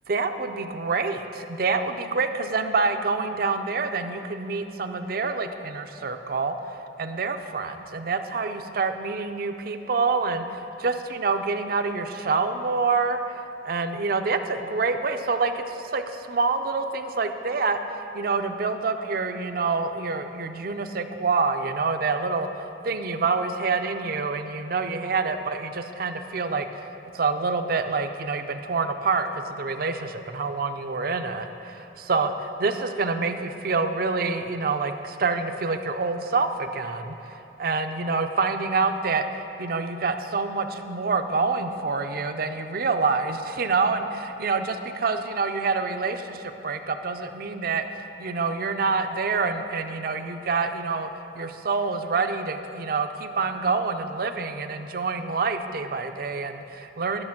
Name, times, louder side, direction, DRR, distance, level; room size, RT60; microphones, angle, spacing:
voice 1, 0.1-6.5 7.0-22.5 22.8-26.9 27.1-51.1 51.3-57.2, right 4 dB, 55° right, 7 dB, 0.5 m, -27 dB
11.0 x 6.8 x 5.9 m, 2.8 s
head